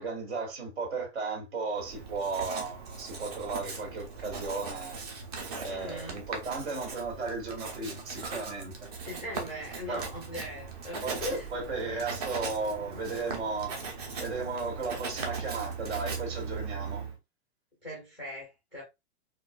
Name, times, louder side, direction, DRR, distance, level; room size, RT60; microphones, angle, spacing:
voice 1, 0.0-4.9 5.6-8.9 9.9-10.1 11.0-13.7 14.2-17.0, right 4 dB, 75° right, 2.2 m, -35 dB
Writing, 1.8-17.2, right 5 dB, 35° right, 0.8 m, -39 dB
voice 2, 5.7-6.2 9.0-11.5 17.8-18.8, left 1 dB, 5° right, 0.4 m, -39 dB
4.6 x 2.6 x 2.3 m
supercardioid pair, 180°, 33 cm